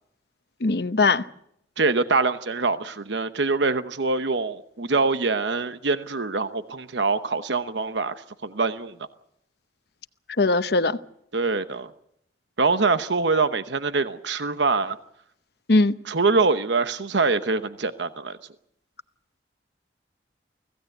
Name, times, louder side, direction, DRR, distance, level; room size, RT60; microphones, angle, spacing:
voice 1, 0.6-1.2 10.4-11.0 15.7-15.9, left 3 dB, 60° left, 0.9 m, -20 dB
voice 2, 1.8-8.1 8.4-9.0 11.3-11.9 12.6-15.0 16.1-18.4, right 4 dB, 80° right, 1.0 m, -24 dB
25.0 x 16.0 x 8.0 m
head